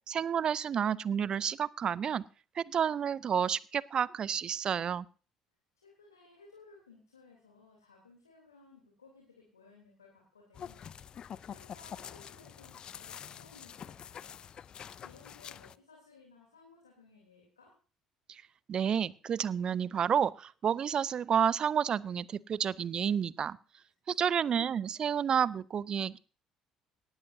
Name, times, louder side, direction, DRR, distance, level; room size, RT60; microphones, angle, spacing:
voice 1, 0.1-2.2 2.6-5.1 18.3-18.4 18.7-23.6 24.1-26.2, right 8 dB, 45° right, 22 dB, 0.5 m, -30 dB
voice 2, 5.7-10.9 11.4-14.4 15.0-17.7 24.1-24.3, left 4 dB, 90° left, 0 dB, 3.2 m, -59 dB
sound 1, 10.5-15.8, left 8 dB, 45° left, 0.5 m, -46 dB
18.0 x 13.0 x 2.7 m, 0.38 s
figure-of-eight pair, 55°, 2 cm